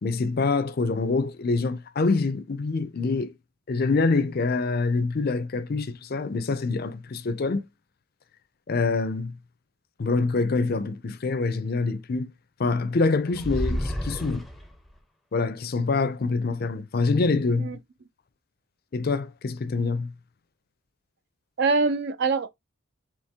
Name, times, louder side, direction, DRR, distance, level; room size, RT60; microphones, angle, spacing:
voice 1, 0.0-3.3 3.7-7.6 8.7-9.3 10.0-12.3 12.6-14.5 15.3-17.7 18.9-20.1, left 3 dB, 45° left, 0.5 m, -25 dB
sound 1, 13.3-15.0, equal, ahead, 0.6 m, -30 dB
voice 2, 21.6-22.5, right 4 dB, 50° right, 0.4 m, -24 dB
4.4 x 3.1 x 3.4 m
head